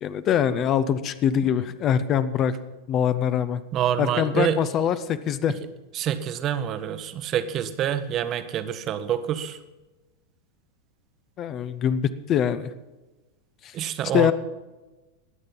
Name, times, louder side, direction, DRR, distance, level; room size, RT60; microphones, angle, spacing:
voice 1, 0.0-2.5 2.9-3.6 4.0-5.5 11.4-12.7 13.6-13.7 14.1-14.3, left 8 dB, 30° left, 14 dB, 0.6 m, -23 dB
voice 2, 3.7-4.6 5.9-9.6 13.7-14.3, right 10 dB, 35° right, 11 dB, 0.9 m, -27 dB
20.5 x 8.0 x 5.5 m, 1.1 s
figure-of-eight pair, 90°, 0 cm